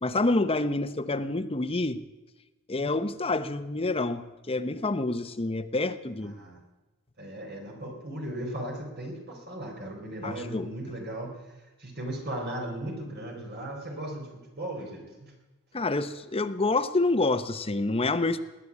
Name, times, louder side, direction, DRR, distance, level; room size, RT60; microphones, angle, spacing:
voice 1, 0.0-2.0 2.7-6.4 10.2-10.7 15.7-18.4, left 2 dB, 25° left, 10 dB, 0.8 m, -28 dB
voice 2, 2.8-3.1 6.2-6.6 7.2-15.3, right 1 dB, 50° right, 1 dB, 4.2 m, -37 dB
20.0 x 8.4 x 8.4 m, 1.1 s
head